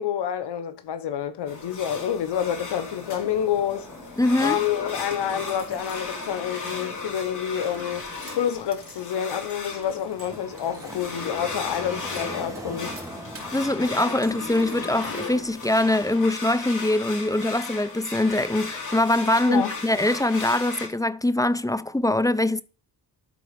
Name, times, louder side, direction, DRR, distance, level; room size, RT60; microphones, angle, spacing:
voice 1, 0.0-3.9 4.4-13.0 19.5-19.7, left 9 dB, 85° left, 1.0 m, -28 dB
sound 1, 1.5-20.9, left 4 dB, 50° left, 3.0 m, -36 dB
sound 2, 2.2-16.2, right 1 dB, 10° right, 1.8 m, -45 dB
voice 2, 4.2-4.6 13.5-22.6, left 1 dB, 10° left, 0.5 m, -23 dB
sound 3, 4.9-6.9 7.4-16.3, right 3 dB, 35° right, 2.7 m, -48 dB
12.5 x 4.1 x 5.1 m
cardioid pair, 85°, 40 cm